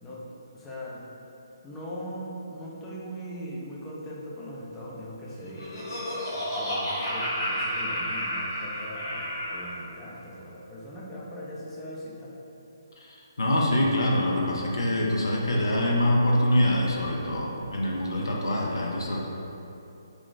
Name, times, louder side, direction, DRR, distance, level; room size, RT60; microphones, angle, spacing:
voice 1, 0.0-1.1 1.6-5.8 6.3-12.4, equal, 10° left, -6 dB, 0.4 m, -40 dB
Laughter, 5.3-9.7, equal, 45° left, 0.9 m, -31 dB
voice 2, 13.0-19.3, left 1 dB, 85° left, -2 dB, 0.5 m, -25 dB
2.5 x 2.3 x 3.7 m, 2.9 s
hypercardioid pair, 150°, 2 cm